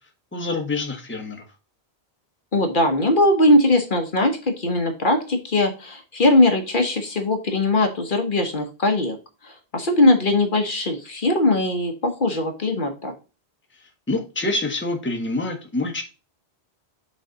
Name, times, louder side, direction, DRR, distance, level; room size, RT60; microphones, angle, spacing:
voice 1, 0.3-1.4 13.7-16.0, left 2 dB, 10° left, 3 dB, 1.1 m, -27 dB
voice 2, 2.5-9.2 9.4-13.1, left 1 dB, 55° left, 5 dB, 1.2 m, -20 dB
6.4 x 4.0 x 3.9 m, 0.31 s
omnidirectional pair, 1.1 m